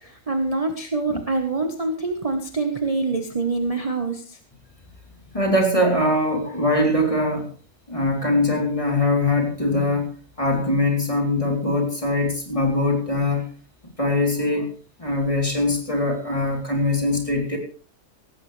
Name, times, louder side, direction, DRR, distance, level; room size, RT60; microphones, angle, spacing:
voice 1, 0.0-4.4, right 3 dB, 25° right, 5 dB, 1.4 m, -25 dB
voice 2, 5.3-7.5 7.9-10.1 10.4-13.5 14.0-14.7 15.0-17.6, left 2 dB, 20° left, 1 dB, 3.8 m, -22 dB
17.5 x 16.0 x 3.4 m, 0.40 s
omnidirectional pair, 1.6 m